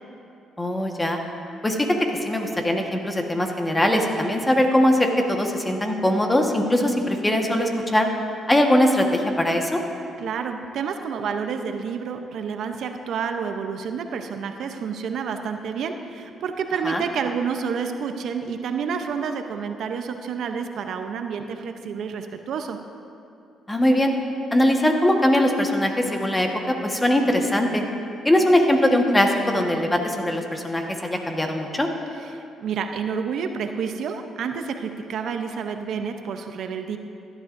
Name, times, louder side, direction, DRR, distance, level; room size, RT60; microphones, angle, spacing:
voice 1, 0.6-1.2 1.6-1.9 2.2-8.1 8.5-9.8 16.8-17.0 23.7-24.1 24.5-27.8 28.2-31.9, left 1 dB, 15° left, 3 dB, 1.3 m, -21 dB
voice 2, 10.2-22.8 32.2-37.0, right 6 dB, 70° right, 6 dB, 0.6 m, -29 dB
15.5 x 11.5 x 2.6 m, 2.6 s
cardioid pair, 75°, 0 cm